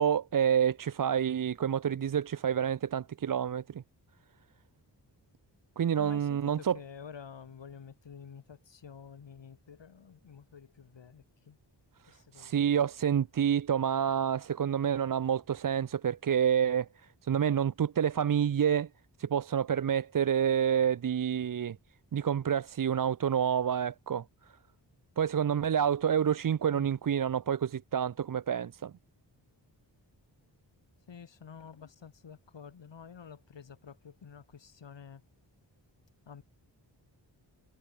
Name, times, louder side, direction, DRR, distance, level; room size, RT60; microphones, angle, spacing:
voice 1, 0.0-3.8 5.8-6.8 12.3-16.9 17.2-18.9 19.2-21.8 22.1-24.2 25.2-28.9, right 8 dB, 50° right, 0.6 m, -28 dB
voice 2, 6.0-11.6 12.1-12.8 26.7-27.0 31.1-35.2 36.3-36.4, left 7 dB, 85° left, 3.8 m, -49 dB
wide cardioid pair, 85°, 43 cm